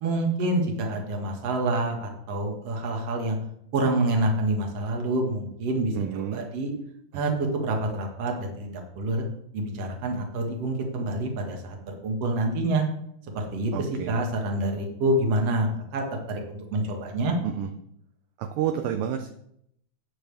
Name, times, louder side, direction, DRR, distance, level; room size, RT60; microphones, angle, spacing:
voice 1, 0.0-3.4 3.7-6.7 7.1-9.2 9.5-12.8 13.3-17.4, right 1 dB, 50° right, 2 dB, 2.2 m, -27 dB
voice 2, 5.9-6.4 13.7-14.2 17.4-17.7 18.4-19.3, right 9 dB, 80° right, 6 dB, 2.0 m, -29 dB
12.5 x 8.8 x 3.4 m, 0.73 s
omnidirectional pair, 4.6 m